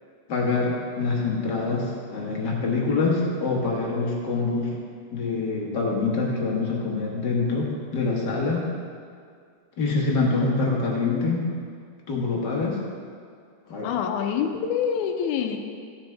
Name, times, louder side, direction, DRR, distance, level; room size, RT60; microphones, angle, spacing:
voice 1, 0.3-4.7 5.1-8.7 9.8-11.5 12.1-12.8 13.7-13.9, left 3 dB, 50° left, -3 dB, 1.5 m, -25 dB
voice 2, 13.8-15.6, left 8 dB, 85° left, 5 dB, 2.1 m, -26 dB
15.0 x 7.0 x 3.5 m, 2.2 s
omnidirectional pair, 3.4 m